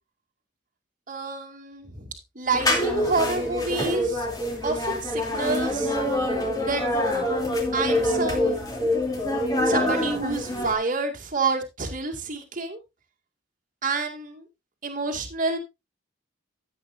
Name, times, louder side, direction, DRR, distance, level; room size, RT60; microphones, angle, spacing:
voice 1, 1.1-4.3 4.6-6.0 6.6-6.8 7.7-8.6 9.6-12.8 13.8-14.5 14.8-15.6, right 4 dB, 40° right, 2.3 m, -28 dB
sound 1, 2.5-10.7, left 1 dB, 20° left, 3.1 m, -25 dB
13.5 x 8.5 x 2.6 m
head